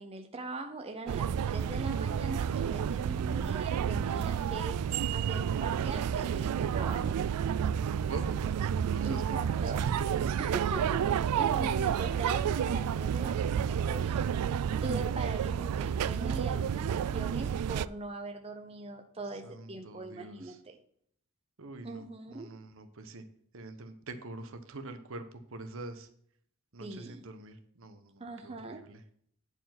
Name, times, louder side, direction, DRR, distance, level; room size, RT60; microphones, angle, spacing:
voice 1, 0.0-4.8 5.1-7.2 9.0-9.8 10.4-14.3 14.8-20.8 21.8-22.5 26.8-27.2 28.2-28.8, right 2 dB, 25° right, 4 dB, 0.7 m, -41 dB
sound 1, 1.1-17.9, right 8 dB, 90° right, 0.3 m, -30 dB
voice 2, 7.7-10.3 19.3-20.6 21.6-23.2 23.5-25.2 25.5-26.1 26.7-29.0, right 2 dB, 65° right, 8 dB, 1.0 m, -45 dB
9.8 x 4.7 x 5.9 m, 0.64 s
head